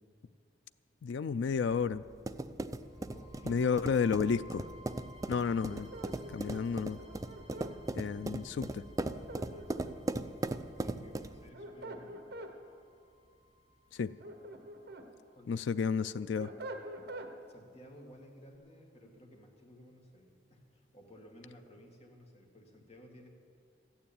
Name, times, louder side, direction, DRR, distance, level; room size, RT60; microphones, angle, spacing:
voice 1, 1.0-2.0 3.5-4.7 5.3-5.9 6.3-7.0 8.0-8.8 13.9-14.1 15.5-16.5, left 5 dB, 80° left, 13 dB, 0.4 m, -31 dB
sound 1, 1.7-11.5, right 2 dB, 20° right, 0.4 m, -39 dB
sound 2, 2.7-16.7, right 1 dB, 5° left, 3.4 m, -58 dB
voice 2, 3.1-3.7 9.5-10.1 10.8-12.4 15.3-15.7 17.5-23.3, equal, 35° left, 1 dB, 2.0 m, -56 dB
sound 3, 5.6-7.7 9.0-10.1 11.3-12.5 14.0-15.1 15.5-17.3, right 1 dB, 60° right, 1.3 m, -46 dB
14.0 x 9.4 x 8.8 m, 2.3 s
head